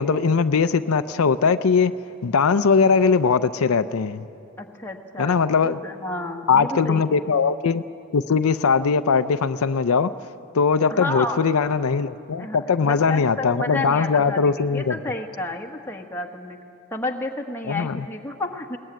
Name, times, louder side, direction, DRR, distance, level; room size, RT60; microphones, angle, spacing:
voice 1, 0.0-1.9 2.2-4.2 5.2-5.8 6.5-7.8 8.1-10.1 10.5-15.0 17.7-18.0, left 5 dB, 80° left, 11 dB, 0.5 m, -20 dB
voice 2, 4.6-7.1 10.9-11.4 12.4-16.6 16.9-18.8, left 2 dB, 10° left, 2 dB, 1.3 m, -31 dB
22.0 x 18.5 x 9.2 m, 2.7 s
head